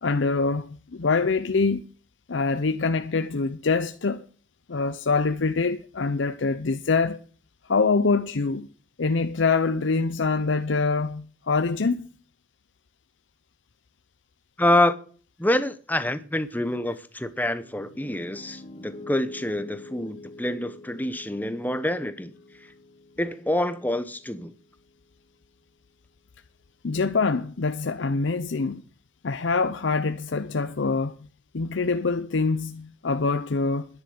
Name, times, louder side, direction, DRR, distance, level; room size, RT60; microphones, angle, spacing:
voice 1, 0.0-1.8 2.3-4.2 4.7-7.2 7.7-8.7 9.0-12.1 26.8-28.8 29.2-31.1 31.5-33.9, left 4 dB, 75° left, 0.7 m, -24 dB
voice 2, 14.6-15.0 15.4-22.3 23.2-24.5, left 1 dB, 10° left, 0.9 m, -26 dB
Piano, 17.5-25.6, left 2 dB, 35° left, 2.5 m, -46 dB
10.5 x 10.0 x 8.0 m
head